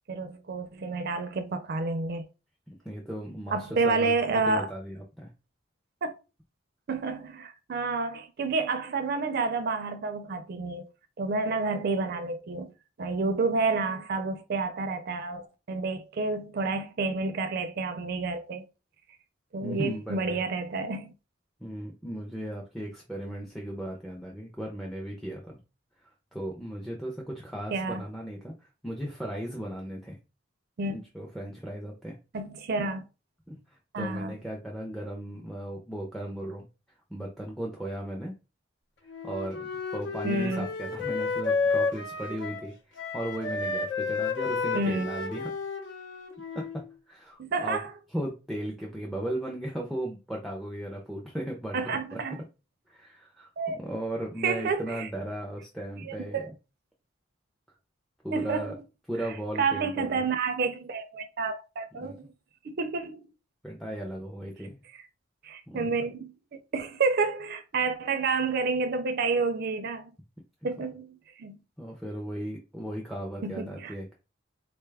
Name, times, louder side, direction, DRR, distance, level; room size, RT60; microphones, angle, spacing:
voice 1, 0.1-2.2 3.5-4.7 6.0-6.2 6.9-10.8 11.2-12.7 13.0-18.6 19.5-21.1 27.7-28.0 30.8-31.0 32.3-33.0 33.9-34.3 40.2-40.7 44.7-45.1 47.4-47.9 51.7-52.4 53.6-53.8 54.4-55.1 56.0-56.5 58.3-58.7 59.6-62.2 62.6-63.2 65.4-66.3 66.7-70.1 70.6-71.6 73.4-73.9, right 4 dB, 55° right, 0.4 m, -29 dB
voice 2, 2.7-4.1 4.4-5.3 19.6-20.4 21.6-25.6 26.0-30.2 30.9-32.2 33.5-38.4 39.0-39.6 39.9-45.6 46.5-47.8 48.1-52.2 52.9-53.5 53.7-56.5 58.2-58.7 59.1-60.2 62.0-62.2 63.6-64.8 65.7-65.9 71.8-74.1, right 1 dB, ahead, 0.5 m, -36 dB
Wind instrument woodwind instrument, 39.1-42.7 43.0-46.9, left 4 dB, 70° left, 0.8 m, -31 dB
3.9 x 2.3 x 3.2 m
head